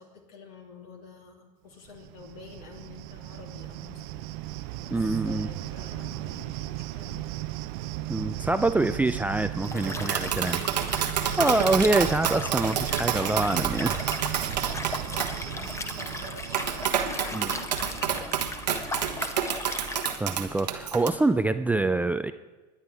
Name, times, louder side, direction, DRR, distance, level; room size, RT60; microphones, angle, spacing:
voice 1, 0.0-7.3 8.4-9.0 9.4-10.6 11.4-11.6 14.7-18.8 19.1-20.0, left 5 dB, 65° left, 1 dB, 3.1 m, -48 dB
Cricket, 1.9-17.6, right 15 dB, 60° right, 0.6 m, -36 dB
voice 2, 4.9-5.5 8.1-10.6 11.3-14.1 17.3-17.5 20.2-22.3, right 2 dB, 5° right, 10 dB, 0.4 m, -25 dB
Liquid, 9.6-20.2, left 2 dB, 15° left, 1.1 m, -37 dB
Tap, 9.8-21.1, right 9 dB, 85° right, 1.2 m, -29 dB
21.5 x 9.8 x 3.5 m, 1.2 s
hypercardioid pair, 90°, 21 cm